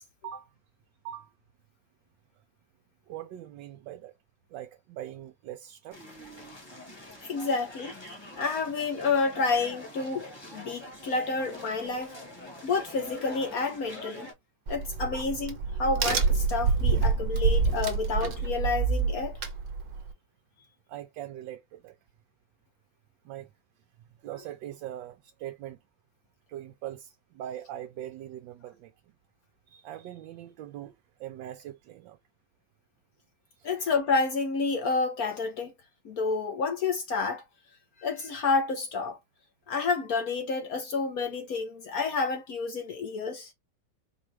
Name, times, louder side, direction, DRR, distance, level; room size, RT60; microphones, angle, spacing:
voice 1, 3.1-4.1 4.5-6.0 15.1-15.2 20.9-21.9 23.2-23.5 24.2-25.8 26.5-28.9 29.7-30.9 31.2-32.2 33.6-33.7, right 12 dB, 80° right, 1.3 m, -41 dB
sound 1, 5.9-14.3, left 1 dB, 15° left, 1.1 m, -45 dB
voice 2, 7.2-7.9 8.4-12.1 12.6-14.3 14.7-19.4 33.6-35.7 36.0-37.4 38.0-39.2 39.7-43.5, left 4 dB, 60° left, 1.1 m, -29 dB
Crack, 14.7-20.1, right 5 dB, 55° right, 1.3 m, -27 dB
4.5 x 2.4 x 3.3 m
omnidirectional pair, 2.0 m